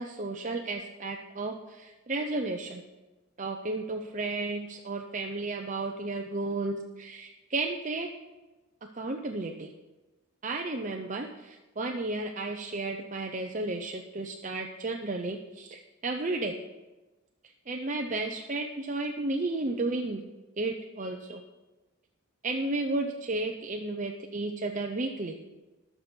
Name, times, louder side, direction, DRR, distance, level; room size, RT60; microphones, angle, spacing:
voice 1, 0.0-2.8 3.4-8.1 8.9-9.7 10.4-16.5 17.4-20.2 20.6-21.4 22.4-25.3, right 2 dB, 35° right, 3 dB, 0.7 m, -33 dB
20.5 x 6.8 x 4.5 m, 1.1 s
head